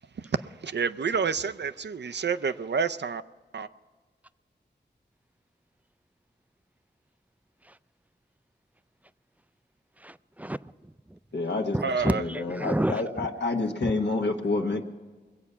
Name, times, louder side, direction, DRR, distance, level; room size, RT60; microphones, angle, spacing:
voice 1, 0.2-3.2 3.5-3.7 11.8-12.2, right 5 dB, 70° right, 0.5 m, -29 dB
voice 2, 10.0-11.2 11.7-13.3 13.8-13.9, right 1 dB, 10° right, 0.3 m, -31 dB
voice 3, 11.3-11.8 12.0-14.8, left 3 dB, 75° left, 1.3 m, -28 dB
21.5 x 8.4 x 5.5 m
wide cardioid pair, 85°, 18 cm